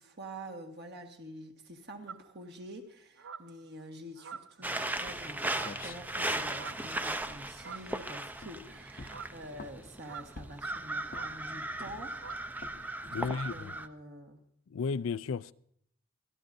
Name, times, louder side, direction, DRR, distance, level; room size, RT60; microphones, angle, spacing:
voice 1, 0.0-12.2 13.0-14.4, right 1 dB, 60° right, 1.6 m, -47 dB
sound 1, 2.1-2.3 3.2-3.6 4.2-4.8 5.5-5.9 6.5-6.9 7.6-8.0 9.0-9.4 10.0-10.6 11.1-11.4 12.1-12.5 12.8-13.0 13.2-13.6, right 6 dB, 90° right, 0.6 m, -46 dB
sound 2, 4.6-13.9, right 2 dB, 10° right, 0.5 m, -37 dB
sound 3, 5.4-8.0 8.4-8.6 9.0-9.9 10.4-10.7 11.1-11.5 11.8-12.2 12.6-12.8 13.2-13.6, left 3 dB, 45° left, 0.7 m, -48 dB
voice 2, 13.0-13.7 14.7-15.5, left 5 dB, 85° left, 0.4 m, -34 dB
24.5 x 13.0 x 2.6 m
head